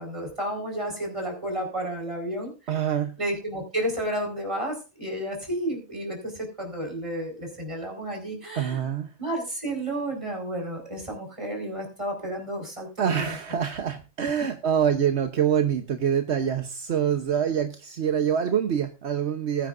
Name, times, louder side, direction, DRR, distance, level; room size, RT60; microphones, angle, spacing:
voice 1, 0.0-2.5 3.2-8.9 9.2-13.2, right 1 dB, 25° right, 1 dB, 4.6 m, -31 dB
voice 2, 2.7-3.1 8.5-9.1 13.0-19.7, right 8 dB, 70° right, 8 dB, 1.2 m, -25 dB
20.0 x 9.6 x 2.5 m, 0.31 s
omnidirectional pair, 1.2 m